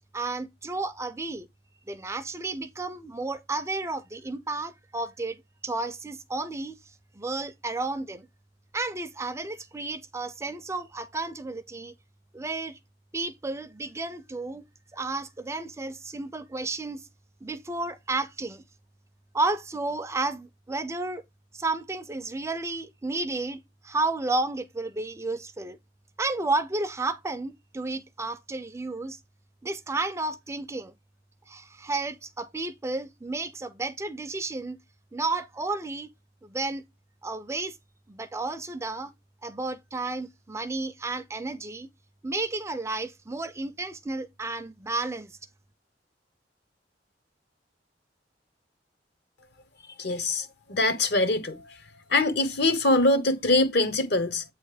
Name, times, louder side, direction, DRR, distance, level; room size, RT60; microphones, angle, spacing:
voice 1, 0.1-1.5 1.9-6.7 7.2-8.3 8.7-11.9 12.3-12.8 13.1-14.6 14.9-17.0 17.4-18.6 19.3-21.2 21.5-23.6 23.8-25.8 26.2-29.2 29.6-30.9 31.5-34.8 35.1-36.1 36.4-36.8 37.2-37.7 38.1-39.1 39.4-41.9 42.2-45.3, right 3 dB, 15° right, 0.4 m, -32 dB
voice 2, 50.0-51.6 52.1-54.4, left 2 dB, 65° left, 1.0 m, -23 dB
8.1 x 3.2 x 4.9 m
head